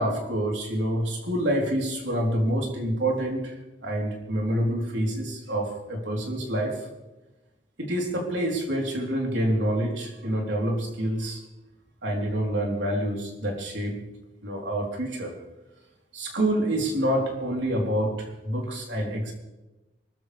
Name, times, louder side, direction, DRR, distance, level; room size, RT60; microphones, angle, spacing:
voice 1, 0.0-3.5 3.8-6.7 7.8-11.4 12.0-14.0 14.4-15.3 16.1-19.3, right 1 dB, 90° right, 0 dB, 3.7 m, -27 dB
24.5 x 14.0 x 3.4 m, 1.1 s
head